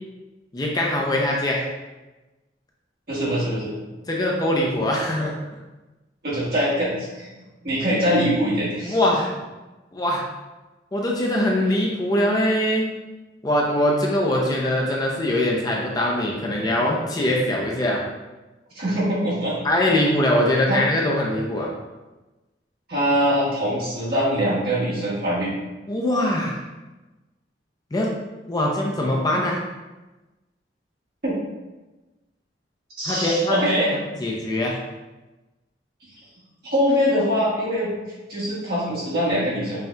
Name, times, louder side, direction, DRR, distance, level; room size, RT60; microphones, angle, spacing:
voice 1, 0.5-1.6 4.1-5.3 8.9-9.3 9.9-10.2 10.9-12.9 13.4-18.0 19.6-21.7 25.9-26.6 27.9-28.1 28.5-29.6 33.0-33.7 34.2-34.8, left 1 dB, 20° left, -2 dB, 0.4 m, -22 dB
voice 2, 3.1-3.7 6.2-7.3 7.6-9.0 18.7-19.5 20.7-20.8 22.9-25.5 31.2-31.4 33.0-33.9 36.6-37.9 38.3-39.8, equal, 55° right, -8 dB, 1.5 m, -23 dB
5.4 x 2.7 x 2.3 m, 1.1 s
head